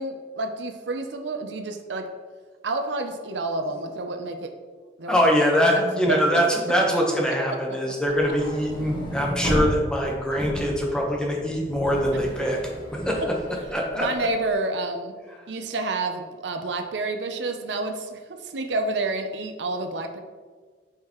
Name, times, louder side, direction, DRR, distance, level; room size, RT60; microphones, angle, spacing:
voice 1, 0.0-2.1 2.6-4.5 5.0-5.2 5.7-5.8 6.1-6.2 13.1-13.3 14.0-15.1 15.5-20.2, right 2 dB, 85° right, 5 dB, 0.7 m, -29 dB
voice 2, 5.1-12.6 12.9-13.2 13.7-14.1, equal, 5° left, -2 dB, 1.1 m, -23 dB
sound 1, 8.0-14.3, equal, 25° left, 1.3 m, -33 dB
9.1 x 4.8 x 3.1 m, 1.5 s
head